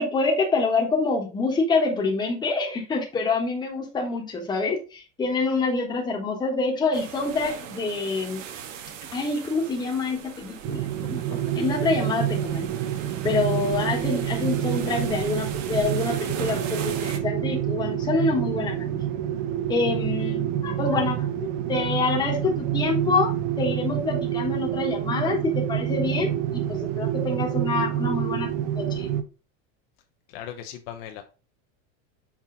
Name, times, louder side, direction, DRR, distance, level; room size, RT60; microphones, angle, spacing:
voice 1, 0.0-8.4 9.1-12.7 13.2-19.0 19.7-28.5 28.7-29.1, left 3 dB, 10° left, 0 dB, 1.1 m, -26 dB
sound 1, 6.9-17.2, right 8 dB, 80° right, 1.2 m, -39 dB
sound 2, 10.6-29.2, right 11 dB, 35° right, 0.5 m, -27 dB
voice 2, 30.3-31.2, left 10 dB, 50° left, 5 dB, 0.8 m, -38 dB
5.9 x 4.4 x 3.8 m, 0.33 s
supercardioid pair, 170°, 38 cm